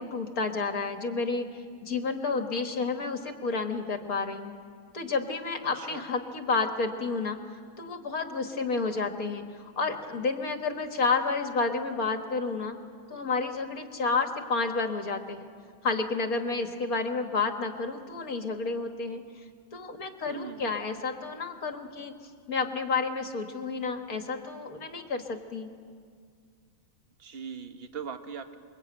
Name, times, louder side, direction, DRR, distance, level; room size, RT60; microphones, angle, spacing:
voice 1, 0.0-4.6 4.9-12.8 13.1-15.5 15.8-19.4 19.7-22.1 22.5-25.7, left 4 dB, 45° left, 5 dB, 1.9 m, -30 dB
voice 2, 5.7-6.1 20.3-20.7 27.2-28.6, right 6 dB, 35° right, 7 dB, 1.3 m, -40 dB
28.5 x 23.0 x 9.0 m, 2.1 s
omnidirectional pair, 2.3 m